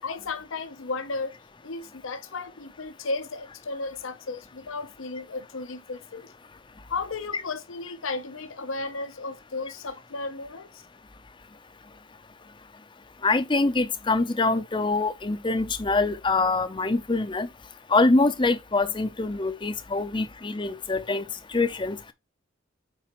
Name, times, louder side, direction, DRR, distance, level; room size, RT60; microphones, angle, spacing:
voice 1, 0.0-1.4 1.6-6.3 6.9-10.8, left 3 dB, 80° left, 0.7 m, -34 dB
voice 2, 13.2-17.5 17.9-21.2 21.5-22.0, left 3 dB, 25° left, 0.6 m, -24 dB
7.5 x 4.8 x 3.0 m
head